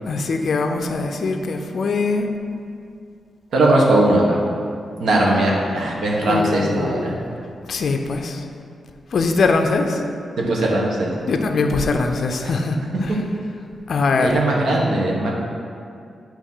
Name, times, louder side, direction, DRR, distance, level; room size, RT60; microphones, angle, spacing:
voice 1, 0.0-2.3 5.2-5.8 6.2-7.3 7.7-8.4 9.1-10.0 11.3-13.2 13.9-14.4, left 3 dB, 55° left, 4 dB, 0.5 m, -22 dB
voice 2, 3.5-4.4 5.0-7.1 10.4-11.1 14.2-15.3, right 1 dB, 75° right, -2 dB, 1.1 m, -19 dB
8.4 x 3.0 x 5.5 m, 2.4 s
wide cardioid pair, 150°, 0 cm